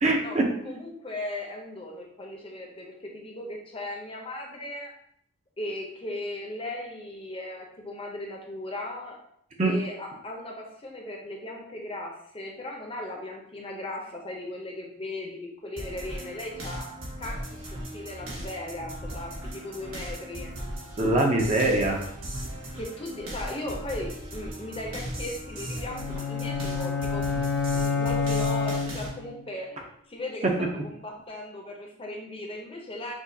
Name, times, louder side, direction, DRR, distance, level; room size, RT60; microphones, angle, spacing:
voice 1, 0.0-0.8 9.6-9.7 21.0-22.1 30.4-30.5, right 2 dB, 30° right, 1 dB, 0.5 m, -23 dB
voice 2, 0.6-4.9 5.6-9.2 9.6-16.9 17.2-20.5 22.7-29.8 30.1-33.1, left 1 dB, 25° left, 0 dB, 0.6 m, -37 dB
sound 1, 15.8-29.1, right 1 dB, 75° right, 1.4 m, -38 dB
sound 2, 25.9-29.4, left 5 dB, 80° left, 0.5 m, -28 dB
6.0 x 2.3 x 2.7 m, 0.72 s
head